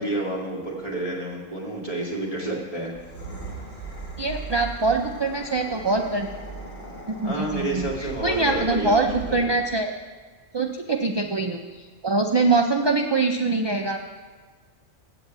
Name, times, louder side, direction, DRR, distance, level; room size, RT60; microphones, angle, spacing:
voice 1, 0.0-2.9 7.2-9.6, right 1 dB, 30° left, -3 dB, 2.3 m, -30 dB
sound 1, 2.9-9.7, right 4 dB, 55° left, 2.6 m, -38 dB
voice 2, 4.2-6.3 7.1-9.9 10.5-14.0, right 3 dB, 40° right, 3 dB, 0.3 m, -24 dB
8.2 x 8.1 x 8.1 m, 1.5 s
omnidirectional pair, 1.3 m